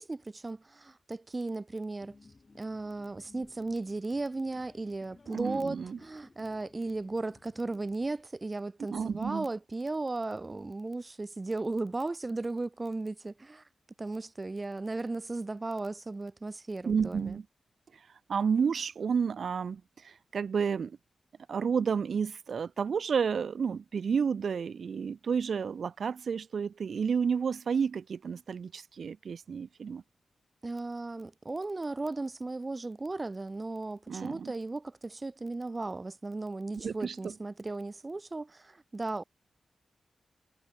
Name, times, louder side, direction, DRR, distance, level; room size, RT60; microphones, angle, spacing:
voice 1, 0.0-2.2 2.5-13.7 14.0-17.4 30.6-39.2, right 2 dB, 25° right, 1.4 m, -36 dB
sound 1, 2.0-8.2, left 3 dB, 30° left, 7.1 m, -58 dB
voice 2, 5.3-6.0 8.9-9.5 16.9-17.4 18.3-21.0 21.5-30.0 34.1-34.5 36.8-37.3, right 6 dB, 60° right, 1.7 m, -31 dB
wide cardioid pair, 140°, 0 cm